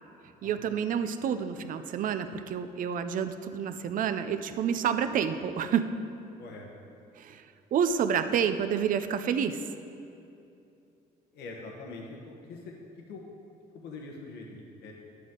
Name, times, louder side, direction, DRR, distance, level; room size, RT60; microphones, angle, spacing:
voice 1, 0.4-5.9 7.2-7.4 7.7-9.6, right 7 dB, 55° right, 10 dB, 0.6 m, -29 dB
voice 2, 11.3-12.7 13.1-13.2 13.8-14.9, left 3 dB, 80° left, 0 dB, 1.2 m, -43 dB
11.0 x 8.4 x 3.8 m, 2.7 s
cardioid pair, 110°, 17 cm